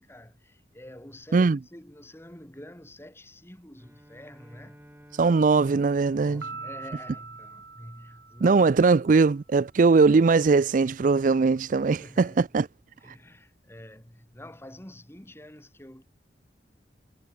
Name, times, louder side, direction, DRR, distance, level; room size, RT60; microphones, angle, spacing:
voice 1, 0.0-4.8 6.2-8.7 9.9-10.0 11.8-12.5 13.0-16.0, left 1 dB, 15° left, 2.6 m, -47 dB
Bowed string instrument, 3.8-8.4, equal, 10° right, 7.3 m, -53 dB
voice 2, 5.2-6.4 8.4-12.7, right 4 dB, 45° right, 0.4 m, -20 dB
Piano, 6.4-9.0, right 4 dB, 65° right, 5.5 m, -42 dB
head